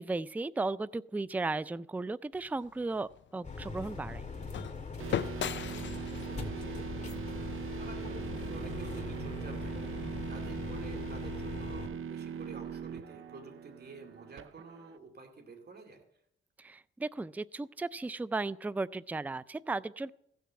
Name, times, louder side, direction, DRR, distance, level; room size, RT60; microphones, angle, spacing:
voice 1, 0.0-4.3 16.6-20.1, right 3 dB, 10° right, 18 dB, 0.4 m, -35 dB
sound 1, 2.3-8.5, left 10 dB, 60° left, 0.5 m, -41 dB
sound 2, 3.4-11.9, left 4 dB, 35° left, 2.4 m, -41 dB
sound 3, 5.0-15.0, right 7 dB, 75° right, 0.8 m, -41 dB
voice 2, 5.6-6.8 7.5-9.9 10.3-16.0, right 4 dB, 50° right, 3 dB, 2.7 m, -50 dB
15.5 x 6.9 x 7.6 m, 0.73 s
cardioid pair, 75°, 21 cm